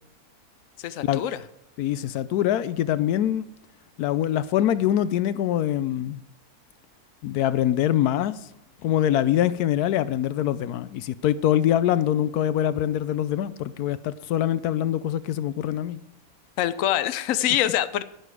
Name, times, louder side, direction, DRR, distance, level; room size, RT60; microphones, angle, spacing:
voice 1, 0.8-1.4 16.6-18.0, left 12 dB, 65° left, 13 dB, 1.0 m, -24 dB
voice 2, 1.8-3.5 4.0-6.2 7.2-8.4 8.8-16.0, left 11 dB, 85° left, 16 dB, 1.1 m, -24 dB
11.0 x 10.0 x 4.8 m, 0.81 s
omnidirectional pair, 1.6 m